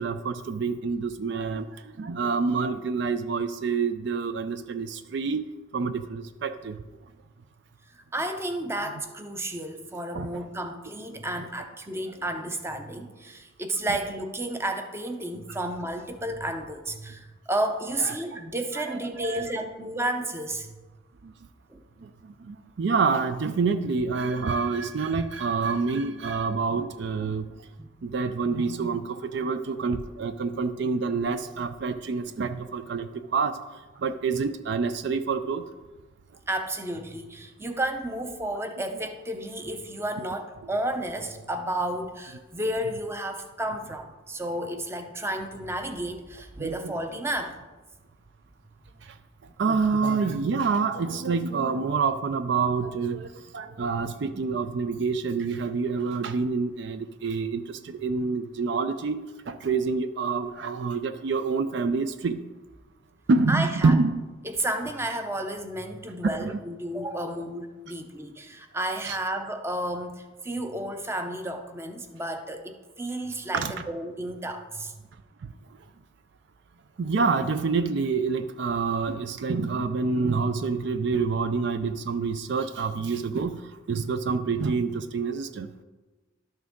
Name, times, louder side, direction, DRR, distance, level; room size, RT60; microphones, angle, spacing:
voice 1, 0.0-5.5 5.7-6.8 10.1-10.5 18.0-18.1 18.8-19.6 21.2-21.3 22.0-27.7 28.0-33.6 34.0-35.6 46.6-47.0 49.0-49.2 49.6-62.4 63.3-64.2 66.2-66.6 69.0-69.2 73.5-73.7 75.4-75.5 77.0-85.7, right 4 dB, 60° right, 10 dB, 0.4 m, -27 dB
voice 2, 8.1-20.7 21.7-21.8 27.8-27.9 36.5-47.6 63.5-64.0 64.4-74.9, right 1 dB, 10° right, 6 dB, 0.6 m, -32 dB
12.0 x 6.3 x 3.6 m, 1.2 s
head